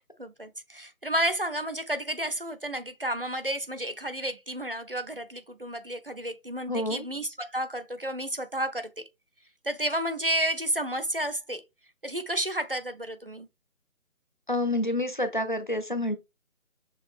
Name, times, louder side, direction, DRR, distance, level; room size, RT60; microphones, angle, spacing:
voice 1, 0.2-9.0 9.6-11.6 12.0-13.5, right 1 dB, 45° right, 0.5 m, -31 dB
voice 2, 6.7-7.1 14.5-16.1, left 1 dB, 35° left, 0.5 m, -28 dB
6.4 x 2.9 x 2.4 m
figure-of-eight pair, 160°, 42 cm